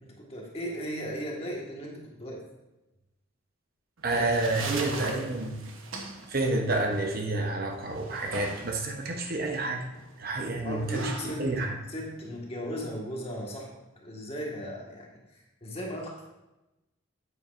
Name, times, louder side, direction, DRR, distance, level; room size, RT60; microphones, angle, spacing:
voice 1, 0.0-2.4 4.1-4.3 4.6-5.3 10.6-11.5 11.9-13.7 14.0-16.3, equal, 30° left, -2 dB, 1.5 m, -37 dB
voice 2, 4.0-5.6 6.3-9.8 10.2-11.8, right 2 dB, 45° right, 2 dB, 0.8 m, -29 dB
sound 1, 4.0-13.0, right 3 dB, 75° right, 1.0 m, -41 dB
9.0 x 8.6 x 2.5 m, 0.98 s
head